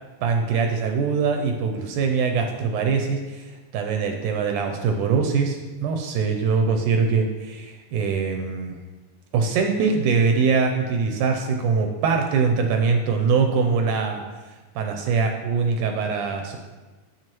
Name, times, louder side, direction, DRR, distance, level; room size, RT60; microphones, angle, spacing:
voice 1, 0.2-8.8 9.3-14.2 14.8-16.6, right 5 dB, 80° right, 4 dB, 2.0 m, -23 dB
7.6 x 7.6 x 3.0 m, 1.2 s
omnidirectional pair, 3.8 m